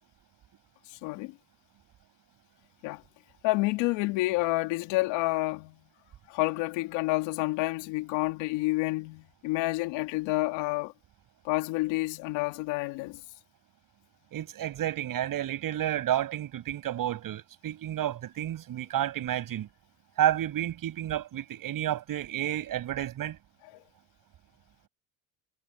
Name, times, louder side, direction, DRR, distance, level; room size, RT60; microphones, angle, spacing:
voice 1, 0.9-1.4 2.8-3.0 3.4-5.8 6.3-10.9 11.4-13.2 23.7-23.8, left 21 dB, 75° left, 2.4 m, -29 dB
voice 2, 14.3-19.7 20.2-23.4, right 12 dB, 45° right, 6.7 m, -30 dB
cardioid pair, 125°, 45 cm